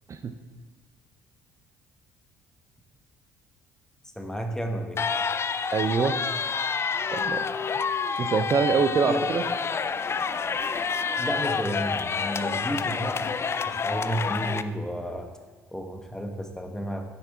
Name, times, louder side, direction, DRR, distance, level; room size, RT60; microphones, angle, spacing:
voice 1, 4.2-5.0 9.0-9.2 11.2-13.3 13.7-15.3 15.7-17.0, equal, 5° left, 4 dB, 1.3 m, -32 dB
sound 1, 5.0-14.6, left 5 dB, 30° left, 0.4 m, -28 dB
voice 2, 5.7-6.2 7.1-7.5 8.2-9.4, right 5 dB, 40° right, 8 dB, 0.6 m, -25 dB
9.8 x 7.1 x 3.7 m, 1.4 s
hypercardioid pair, 50°, 8 cm